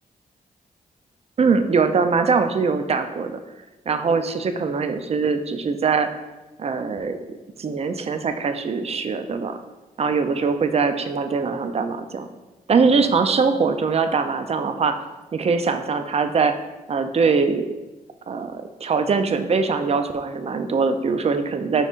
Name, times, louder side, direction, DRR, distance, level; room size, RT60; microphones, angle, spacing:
voice 1, 1.4-3.4 3.9-6.1 6.6-9.6 10.0-12.3 12.7-15.0 15.3-16.5 16.9-17.7 18.3-21.9, right 5 dB, 40° right, 8 dB, 0.4 m, -22 dB
5.3 x 3.8 x 2.4 m, 1.1 s
cardioid pair, 65°, 16 cm